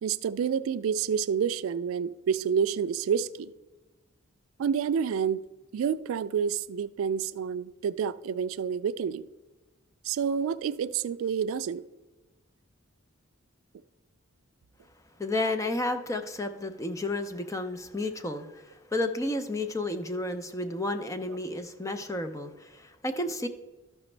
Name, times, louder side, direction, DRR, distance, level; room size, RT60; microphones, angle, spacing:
voice 1, 0.0-3.5 4.6-5.4 5.7-9.3 10.0-11.8 20.6-20.7, right 7 dB, 80° right, 0.3 m, -29 dB
voice 2, 15.2-23.5, left 2 dB, 15° left, 0.4 m, -32 dB
13.0 x 6.0 x 3.2 m
head